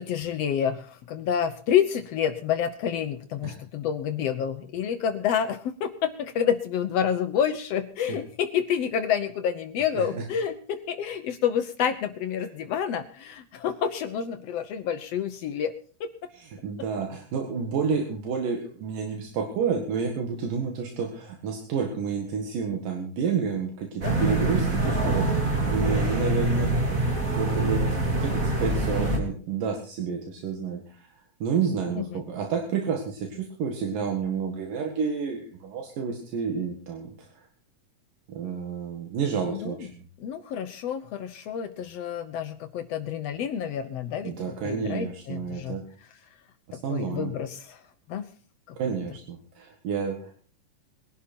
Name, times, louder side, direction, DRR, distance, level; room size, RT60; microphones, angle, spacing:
voice 1, 0.0-15.7 16.0-16.1 24.0-24.4 32.0-32.2 39.5-39.9 40.2-44.4 44.6-45.8 46.7-47.8 48.1-48.3 48.7-48.8, left 8 dB, 75° left, 9 dB, 1.5 m, -28 dB
voice 2, 16.3-26.8 27.4-31.1 31.4-37.5 38.3-40.1 44.2-45.8 46.7-47.3 48.8-50.3, right 6 dB, 75° right, 2 dB, 3.5 m, -30 dB
sound 1, 24.0-29.2, right 2 dB, 25° right, 2.9 m, -25 dB
21.5 x 11.5 x 4.4 m, 0.43 s
omnidirectional pair, 3.9 m